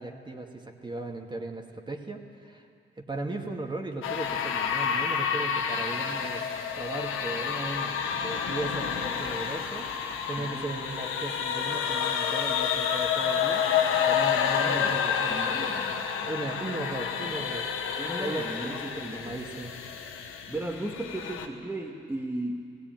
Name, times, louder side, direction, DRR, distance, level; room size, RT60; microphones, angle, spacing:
voice 1, 0.0-2.7 3.0-6.5 6.8-13.6 13.9-15.7 16.2-17.7 18.2-19.7, right 2 dB, 25° right, 2 dB, 2.3 m, -37 dB
sound 1, 4.0-21.5, left 7 dB, 90° left, 1.5 m, -29 dB
voice 2, 10.4-10.7 14.6-15.0 15.3-15.9 18.0-19.4 20.5-22.6, right 1 dB, 10° right, -1 dB, 2.0 m, -36 dB
16.5 x 16.5 x 9.3 m, 2.3 s
cardioid pair, 65°, 20 cm